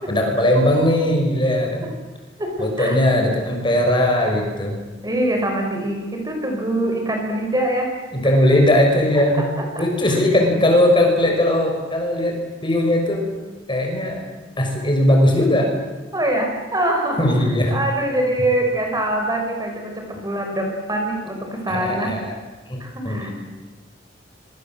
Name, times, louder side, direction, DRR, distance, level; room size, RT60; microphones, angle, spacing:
voice 1, 0.1-1.8 2.6-4.8 8.1-9.4 9.8-13.3 13.7-14.2 14.6-15.7 17.2-17.8 20.1-20.2 21.7-22.3 22.7-22.8 23.0-23.3, left 1 dB, 25° left, 2 dB, 6.2 m, -19 dB
voice 2, 2.4-3.0 5.0-8.0 9.4-10.2 16.1-17.3 17.7-22.1 22.8-23.3, right 1 dB, 20° right, 2 dB, 5.3 m, -24 dB
26.0 x 25.5 x 7.8 m, 1.3 s
head